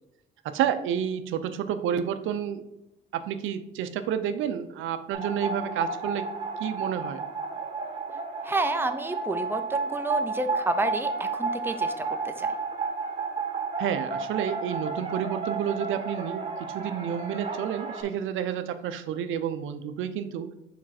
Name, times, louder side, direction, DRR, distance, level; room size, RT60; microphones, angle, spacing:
voice 1, 0.4-2.6 3.1-6.3 6.6-7.3 13.8-20.5, right 9 dB, 85° right, 10 dB, 0.6 m, -30 dB
sound 1, 5.1-18.0, right 4 dB, 30° right, 2.1 m, -32 dB
voice 2, 8.4-12.5, right 2 dB, 10° right, 7 dB, 0.6 m, -30 dB
5.1 x 5.0 x 4.2 m, 0.89 s
cardioid pair, 90°, 20 cm